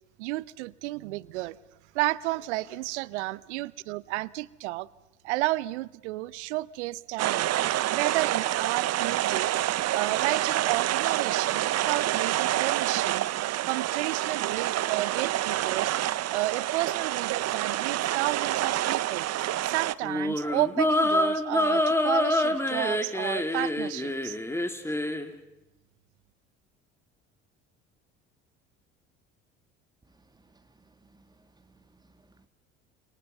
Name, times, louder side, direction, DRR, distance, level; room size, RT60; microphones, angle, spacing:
voice 1, 0.2-1.6 1.9-4.9 5.2-7.5 7.9-9.5 9.9-15.9 16.3-19.3 19.6-24.4, right 19 dB, 75° right, 0.8 m, -32 dB
sound 1, 7.2-19.9, right 13 dB, 45° right, 0.8 m, -27 dB
sound 2, 20.0-25.3, left 1 dB, 5° left, 2.8 m, -26 dB
voice 2, 30.1-32.5, right 3 dB, 10° right, 2.1 m, -62 dB
30.0 x 27.0 x 5.4 m
hypercardioid pair, 60°, 35 cm